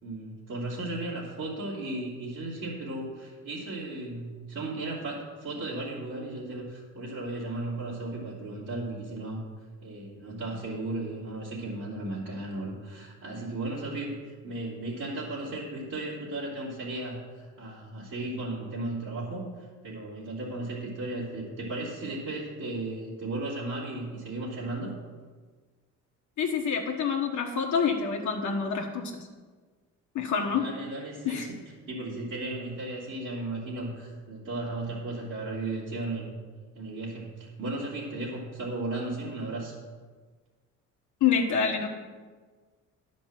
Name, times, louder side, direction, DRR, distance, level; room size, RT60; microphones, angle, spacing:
voice 1, 0.0-9.4 9.8-25.0 30.5-36.3 36.8-39.8, right 2 dB, 65° right, -9 dB, 2.9 m, -35 dB
voice 2, 26.4-29.3 30.1-30.6 31.2-31.5 41.2-41.9, left 6 dB, 70° left, 1 dB, 1.2 m, -27 dB
10.5 x 5.2 x 7.5 m, 1.5 s
cardioid pair, 90°, 30 cm